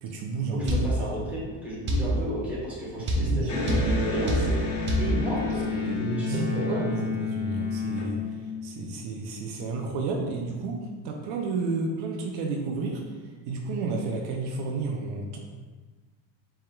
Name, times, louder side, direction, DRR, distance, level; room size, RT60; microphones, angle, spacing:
voice 1, 0.0-1.1 2.1-2.3 3.0-3.5 5.9-8.2 8.6-13.0 13.5-15.4, right 3 dB, 75° right, 1 dB, 0.7 m, -31 dB
voice 2, 0.5-4.7 5.0-6.8, equal, 5° right, -8 dB, 1.3 m, -32 dB
sound 1, 0.7-0.9 1.9-2.1 3.1-3.3 3.7-3.9 4.3-4.5 4.9-5.1, left 1 dB, 25° right, 0.5 m, -24 dB
Electric guitar, 3.5-8.9, left 5 dB, 40° left, 0.9 m, -31 dB
4.3 x 3.5 x 2.3 m, 1.4 s
cardioid pair, 145°, 46 cm